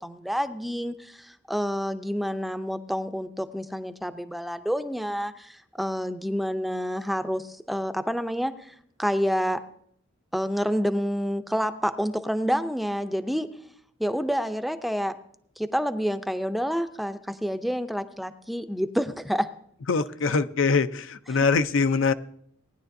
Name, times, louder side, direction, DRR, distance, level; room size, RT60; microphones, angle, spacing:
voice 1, 0.0-9.6 10.3-13.5 14.0-15.2 15.6-19.5, equal, ahead, 10 dB, 0.5 m, -28 dB
voice 2, 19.9-22.1, left 4 dB, 75° left, 12 dB, 0.5 m, -23 dB
18.5 x 10.0 x 2.6 m, 0.68 s
head